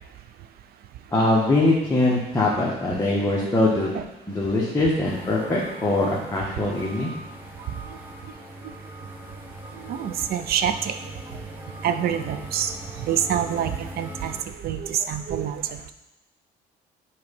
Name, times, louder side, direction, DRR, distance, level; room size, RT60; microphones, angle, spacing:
voice 1, 1.1-3.9 4.3-7.1, left 2 dB, 15° left, -5 dB, 1.4 m, -22 dB
sound 1, 5.0-14.4, right 1 dB, 10° right, 1.2 m, -40 dB
voice 2, 9.8-10.9 11.8-12.7 13.1-14.3 14.6-15.9, right 9 dB, 65° right, 10 dB, 0.6 m, -26 dB
7.9 x 4.2 x 5.3 m, 1.0 s
cardioid pair, 110°, 17 cm